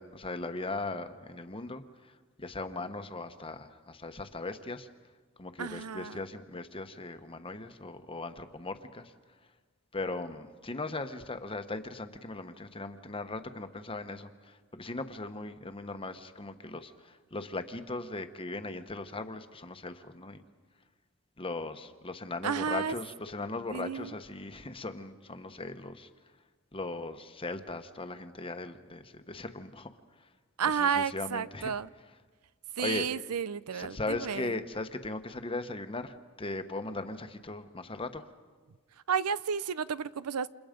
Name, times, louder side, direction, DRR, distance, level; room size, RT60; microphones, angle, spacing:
voice 1, 0.0-4.9 5.4-9.1 9.9-20.4 21.4-26.1 26.7-29.9 30.2-30.3 30.7-31.7 32.8-33.1 33.7-38.3, left 2 dB, 25° left, 8 dB, 1.1 m, -38 dB
voice 2, 5.6-6.2 22.4-23.0 23.7-24.1 30.6-31.9 32.8-34.5 39.1-40.5, right 6 dB, 90° right, 17 dB, 0.6 m, -32 dB
29.0 x 28.0 x 5.2 m, 1.4 s
head